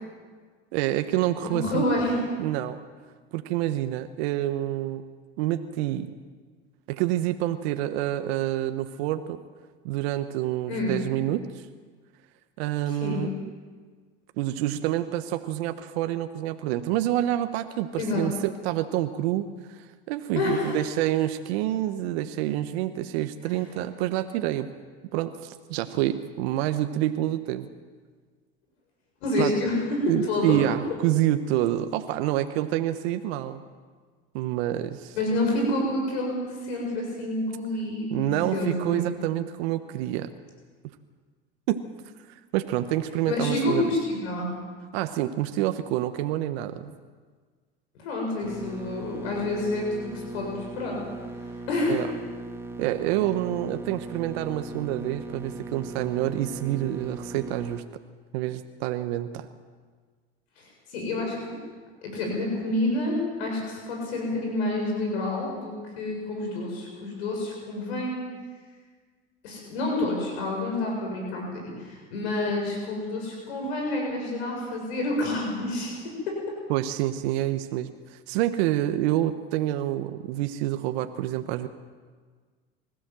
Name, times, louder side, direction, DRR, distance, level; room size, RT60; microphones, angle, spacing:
voice 1, 0.7-1.8 2.4-2.8 3.3-5.0 5.4-6.1 6.9-9.4 9.8-11.6 12.6-13.3 14.4-24.7 25.1-27.7 29.4-29.5 30.1-33.6 34.3-35.1 38.1-40.3 41.7-41.8 42.5-43.8 44.9-46.9 51.9-52.1 52.8-57.8 58.3-59.5 76.7-81.7, right 13 dB, 75° right, 9 dB, 1.2 m, -27 dB
voice 2, 1.4-2.2 10.7-11.0 12.9-13.3 18.0-18.2 20.3-20.8 23.4-23.6 29.2-30.6 35.1-39.1 43.2-44.5 48.0-50.5 50.8-51.0 51.4-52.0 60.6-61.4 62.0-68.2 69.4-75.9 76.3-76.4, left 2 dB, 80° left, 0 dB, 7.4 m, -28 dB
sound 1, 48.4-57.8, right 2 dB, 10° right, 2.1 m, -39 dB
24.5 x 15.5 x 7.7 m, 1.5 s
hypercardioid pair, 85°, 32 cm